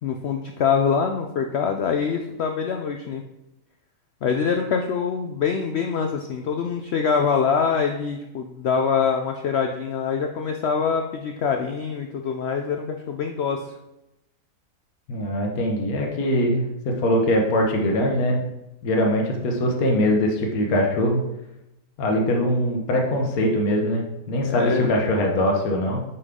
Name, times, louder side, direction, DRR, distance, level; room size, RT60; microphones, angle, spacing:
voice 1, 0.0-3.2 4.2-13.6 24.5-24.9, left 6 dB, 85° left, 4 dB, 0.5 m, -24 dB
voice 2, 15.1-18.4 18.8-21.2 22.0-26.0, left 1 dB, 65° left, 1 dB, 1.5 m, -22 dB
6.8 x 5.4 x 3.7 m, 0.92 s
omnidirectional pair, 1.7 m